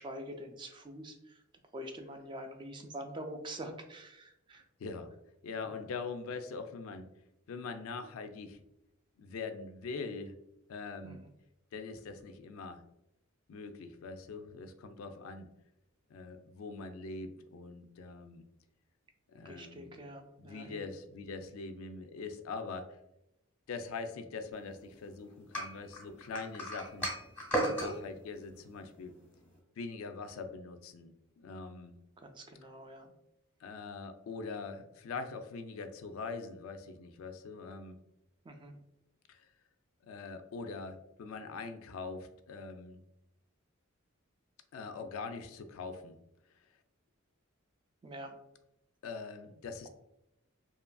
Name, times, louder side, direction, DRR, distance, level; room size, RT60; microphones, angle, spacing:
voice 1, 0.0-1.4 1.7-4.6 11.0-11.3 19.4-20.8 27.6-27.9 32.2-33.1 38.5-38.7 48.0-48.4, right 1 dB, 20° right, 5 dB, 0.3 m, -45 dB
voice 2, 5.4-7.1 7.5-8.6 9.2-10.3 10.7-11.2 11.7-12.8 13.5-15.5 16.1-18.5 19.3-19.9 20.4-22.9 23.7-27.1 27.6-29.1 29.8-31.9 33.6-38.0 39.3-39.5 40.0-43.0 44.7-46.2 49.0-49.9, left 4 dB, 70° left, 8 dB, 0.3 m, -43 dB
sound 1, 25.5-27.9, right 1 dB, 10° left, 0.9 m, -34 dB
2.8 x 2.4 x 2.2 m, 0.84 s
head